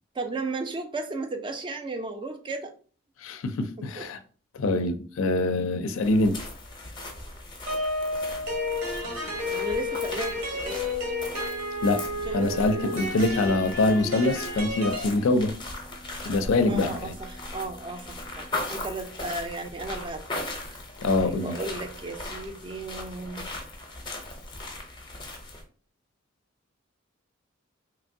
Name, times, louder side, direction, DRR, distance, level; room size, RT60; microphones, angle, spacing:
voice 1, 0.2-2.7 4.0-4.1 9.5-10.8 12.2-12.9 16.7-20.4 21.2-23.5, right 2 dB, 25° right, 0.3 m, -35 dB
voice 2, 3.2-4.2 4.5-6.4 11.8-12.0 12.3-15.5 16.3-17.1 21.0-21.5, left 2 dB, 75° left, 0.4 m, -24 dB
sound 1, 6.0-25.6, left 2 dB, 25° left, 0.5 m, -39 dB
sound 2, 7.7-15.0, left 2 dB, 85° right, 1.0 m, -31 dB
Wind instrument woodwind instrument, 10.6-18.7, right 1 dB, 60° right, 0.6 m, -50 dB
2.9 x 2.6 x 2.6 m
head